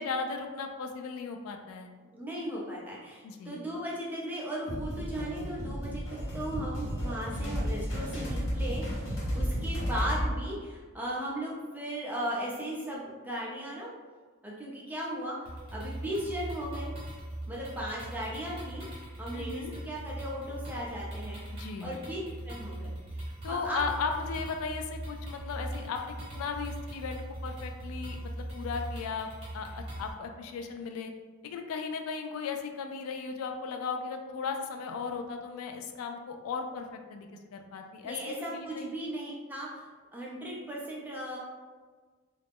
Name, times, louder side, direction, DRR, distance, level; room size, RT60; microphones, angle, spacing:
voice 1, 0.0-1.9 3.2-3.6 19.3-19.8 21.5-21.9 23.4-29.3 29.5-31.1 31.4-38.2 38.5-39.0, left 5 dB, 85° left, 6 dB, 0.3 m, -36 dB
voice 2, 2.0-13.9 14.4-16.9 17.5-18.8 19.2-21.4 21.8-22.2 22.4-23.8 38.0-41.4, equal, 10° right, -5 dB, 0.5 m, -37 dB
sound 1, 4.7-10.3, equal, 70° left, 0.9 m, -33 dB
sound 2, 15.5-30.1, right 1 dB, 25° right, 0.8 m, -40 dB
2.4 x 2.0 x 3.4 m, 1.4 s
head